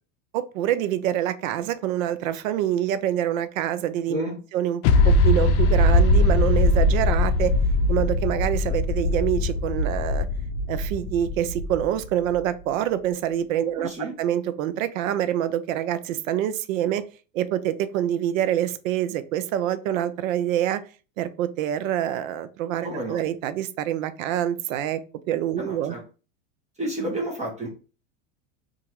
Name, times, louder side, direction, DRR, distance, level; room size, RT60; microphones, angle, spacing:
voice 1, 0.3-4.2 4.5-7.5 7.9-10.3 10.7-13.9 14.2-17.0 17.3-20.8 21.2-25.0 25.3-25.9, right 11 dB, 85° right, 0.5 m, -26 dB
voice 2, 4.1-4.4 13.8-14.1 22.8-23.2 25.6-26.0 26.8-27.7, right 1 dB, 15° right, 1.0 m, -30 dB
sound 1, 4.8-12.4, left 2 dB, 65° left, 0.5 m, -21 dB
2.9 x 2.5 x 2.8 m
supercardioid pair, 110°, 40 cm